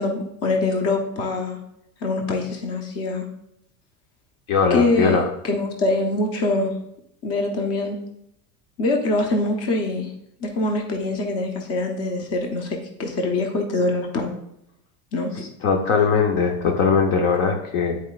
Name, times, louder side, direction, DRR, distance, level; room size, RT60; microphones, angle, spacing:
voice 1, 0.0-1.6 2.0-3.3 4.7-5.2 5.5-6.7 7.2-8.0 8.8-10.1 10.4-14.4 15.1-15.5, left 2 dB, 40° left, 2 dB, 1.1 m, -24 dB
voice 2, 4.5-5.2 15.6-18.0, left 5 dB, 65° left, 2 dB, 1.0 m, -20 dB
9.1 x 4.6 x 2.5 m, 0.79 s
cardioid pair, 150°, 37 cm